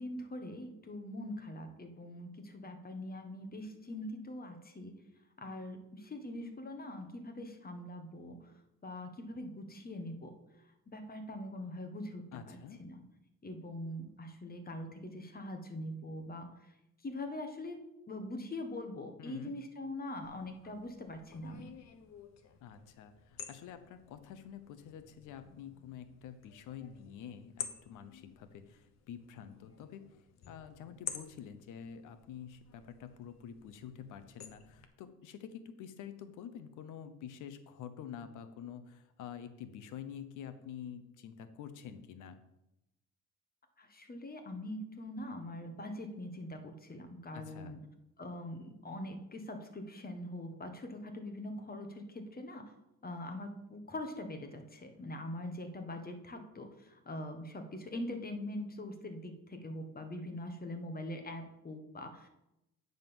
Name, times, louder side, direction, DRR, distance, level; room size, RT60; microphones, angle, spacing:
voice 1, 0.0-4.9 5.4-8.5 8.8-10.3 10.9-13.0 13.4-16.5 17.0-17.8 18.1-21.7 43.8-47.8 48.2-52.7 53.0-62.3, left 1 dB, 30° left, 6 dB, 1.5 m, -43 dB
voice 2, 12.3-12.8 19.2-19.6 22.6-30.1 30.5-42.4 47.3-47.7, left 8 dB, 90° left, 10 dB, 0.9 m, -48 dB
sound 1, 20.2-34.9, left 8 dB, 60° left, 1.1 m, -51 dB
9.3 x 4.0 x 7.0 m, 0.88 s
cardioid pair, 90°, 30 cm